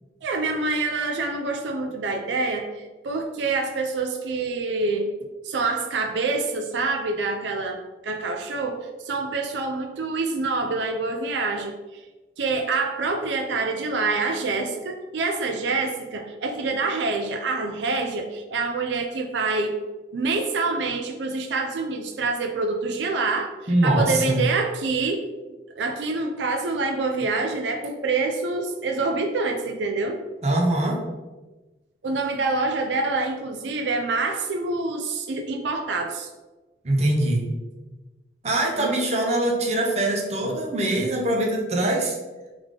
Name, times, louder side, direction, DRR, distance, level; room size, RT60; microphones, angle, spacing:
voice 1, 0.2-5.1 5.4-11.7 12.4-19.8 20.1-25.2 25.7-30.2 32.0-36.3 38.8-38.9, right 3 dB, 85° right, 3 dB, 0.4 m, -26 dB
voice 2, 23.7-24.4 30.4-31.0 36.8-37.4 38.4-42.2, right 1 dB, 40° right, 0 dB, 0.7 m, -22 dB
3.5 x 3.4 x 3.6 m, 1.2 s
head